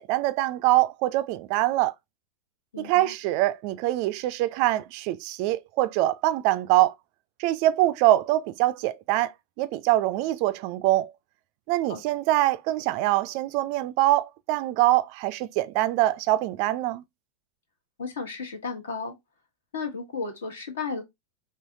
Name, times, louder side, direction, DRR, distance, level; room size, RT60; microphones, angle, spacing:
voice 1, 0.0-1.9 2.8-6.9 7.4-9.3 9.6-11.1 11.7-17.0, right 16 dB, 45° right, 0.3 m, -24 dB
voice 2, 2.7-3.1 11.9-12.2 18.0-19.1 19.7-21.0, left 4 dB, 65° left, 1.2 m, -34 dB
4.7 x 3.0 x 2.6 m
figure-of-eight pair, 90°, 0 cm